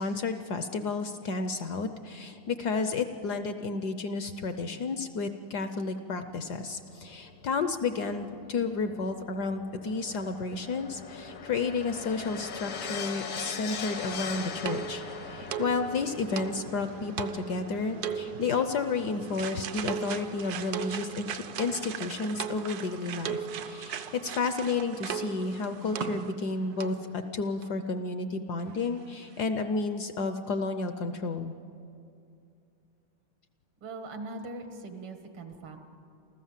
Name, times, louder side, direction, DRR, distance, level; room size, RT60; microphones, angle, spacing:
voice 1, 0.0-31.5, left 4 dB, 65° left, 8 dB, 1.1 m, -31 dB
sound 1, 6.3-22.7 23.7-23.8, left 6 dB, 80° left, 2.3 m, -42 dB
sound 2, 14.0-26.5 26.8-27.0 27.6-27.7 28.0-28.1, right 8 dB, 65° right, 1.0 m, -38 dB
voice 2, 33.8-35.8, right 2 dB, 80° right, 5 dB, 2.6 m, -41 dB
28.5 x 14.5 x 7.4 m, 2.6 s
omnidirectional pair, 2.4 m